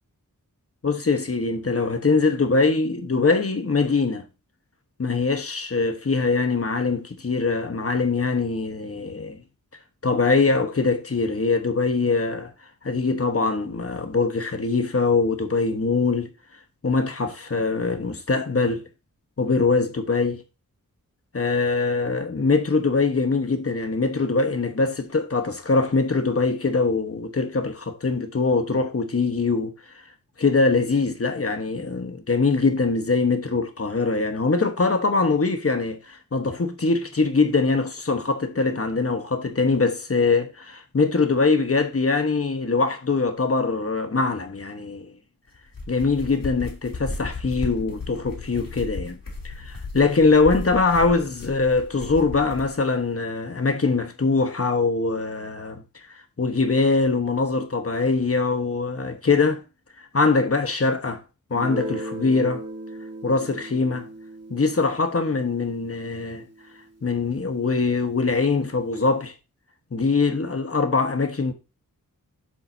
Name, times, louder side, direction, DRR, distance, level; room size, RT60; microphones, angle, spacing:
voice 1, 0.8-4.2 5.0-9.4 10.0-12.5 12.8-16.3 16.8-18.8 19.4-20.4 21.3-29.7 30.4-45.1 45.9-49.2 49.4-55.8 56.4-59.6 60.0-61.2 61.5-62.6 63.2-64.1 64.5-66.4 67.0-69.3 69.9-71.5, left 4 dB, 45° left, 1.2 m, -22 dB
sound 1, 45.6-52.7, left 3 dB, 80° left, 3.2 m, -35 dB
Guitar, 61.5-67.0, equal, 45° right, 2.7 m, -37 dB
7.6 x 7.2 x 2.7 m
wide cardioid pair, 80°, 33 cm